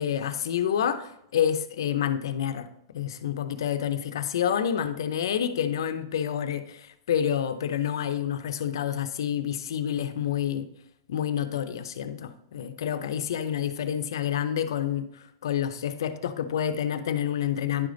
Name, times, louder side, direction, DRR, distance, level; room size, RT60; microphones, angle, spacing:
voice 1, 0.0-2.7 2.9-10.7 11.1-15.1 15.4-17.9, left 9 dB, 80° left, 0.6 m, -28 dB
10.0 x 5.1 x 3.9 m
supercardioid pair, 165°, 2 cm